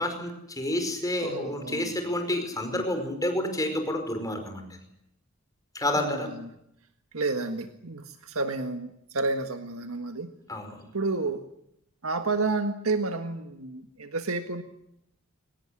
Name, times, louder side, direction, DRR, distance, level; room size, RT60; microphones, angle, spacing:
voice 1, 0.0-4.7 5.7-6.3 10.5-10.8, left 1 dB, 15° left, 6 dB, 5.1 m, -29 dB
voice 2, 1.2-1.9 6.0-6.5 7.1-10.3 10.9-11.4 12.0-14.6, right 3 dB, 85° right, 7 dB, 1.7 m, -30 dB
23.5 x 19.0 x 10.0 m, 0.78 s
head